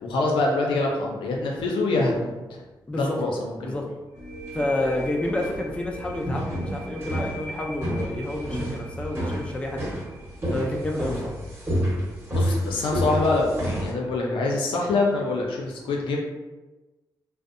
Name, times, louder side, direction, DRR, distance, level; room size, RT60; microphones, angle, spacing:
voice 1, 0.0-2.6 2.9-3.8 11.0-11.2 12.3-16.2, left 2 dB, 85° left, -1 dB, 0.5 m, -25 dB
voice 2, 2.9-3.2 3.6-3.9 4.5-9.9 10.5-11.3, left 1 dB, 15° left, 0 dB, 0.4 m, -29 dB
sound 1, 4.1-11.5, equal, 90° right, 0.8 m, -41 dB
sound 2, 4.2-13.9, equal, 30° right, 1.0 m, -30 dB
2.5 x 2.0 x 2.5 m, 1.2 s
cardioid pair, 60°, 8 cm